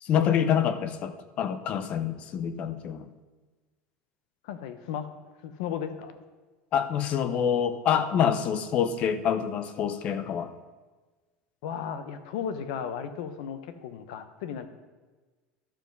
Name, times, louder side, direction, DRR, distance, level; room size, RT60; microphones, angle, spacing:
voice 1, 0.0-3.1 6.7-10.5, left 8 dB, 35° left, 12 dB, 0.6 m, -26 dB
voice 2, 4.4-5.1 5.4-6.2 11.6-14.7, left 8 dB, 70° left, 10 dB, 1.0 m, -35 dB
12.0 x 7.3 x 5.5 m, 1.3 s
cardioid pair, 170°, 4 cm